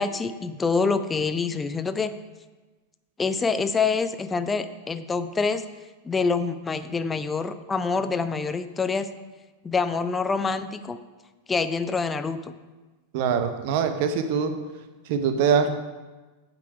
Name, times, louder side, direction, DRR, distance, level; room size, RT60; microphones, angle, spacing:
voice 1, 0.0-2.1 3.2-5.6 6.0-9.1 9.6-11.0 11.5-12.5, left 4 dB, 15° left, 11 dB, 0.4 m, -26 dB
voice 2, 13.1-14.5 15.1-15.8, right 6 dB, 50° right, 8 dB, 0.6 m, -23 dB
8.2 x 3.9 x 4.7 m, 1.2 s
figure-of-eight pair, 90°, 0 cm